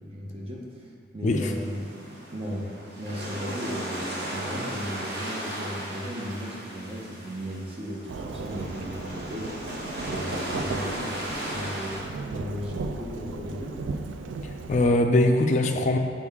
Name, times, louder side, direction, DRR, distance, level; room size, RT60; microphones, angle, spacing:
voice 1, 0.0-1.9 2.3-9.7 10.0-13.8, equal, 30° right, -2 dB, 0.8 m, -36 dB
sound 1, 1.3-12.0, right 1 dB, 60° right, 1.1 m, -36 dB
Thunderstorm / Rain, 8.1-14.9, right 3 dB, 85° right, 0.4 m, -36 dB
voice 2, 14.4-16.0, left 2 dB, 40° left, 4 dB, 0.4 m, -22 dB
6.2 x 4.2 x 3.6 m, 2.1 s
head